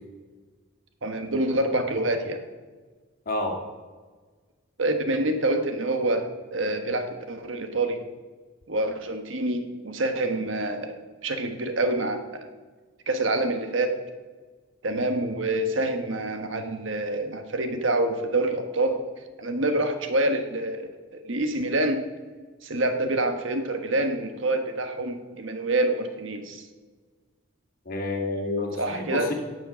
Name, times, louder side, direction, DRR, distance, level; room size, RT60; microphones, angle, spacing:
voice 1, 1.0-2.4 4.8-8.0 8.7-12.5 13.1-13.9 14.8-19.0 19.4-22.0 22.6-26.7 28.8-29.3, right 2 dB, 65° right, 6 dB, 1.3 m, -26 dB
voice 2, 3.3-3.6 27.9-29.3, left 2 dB, 45° left, 2 dB, 2.1 m, -29 dB
17.0 x 6.4 x 6.3 m, 1.4 s
head